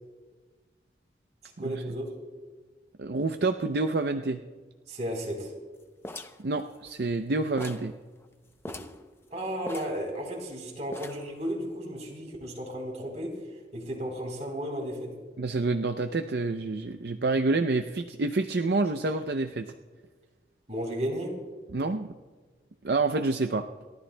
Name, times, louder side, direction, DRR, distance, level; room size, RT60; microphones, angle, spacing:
voice 1, 1.6-2.2 4.9-5.5 9.3-13.4 13.7-15.2 20.7-21.4, equal, 40° right, 0 dB, 3.6 m, -34 dB
voice 2, 3.0-4.4 6.4-7.9 15.4-19.7 21.7-22.1 22.8-23.7, right 3 dB, 65° right, 6 dB, 0.5 m, -28 dB
sound 1, 6.0-7.3 7.6-8.0 8.2-8.3 8.6-9.0 9.7-10.5 10.9-11.4, left 2 dB, 15° left, 0.5 m, -42 dB
30.0 x 13.0 x 2.2 m, 1.4 s
head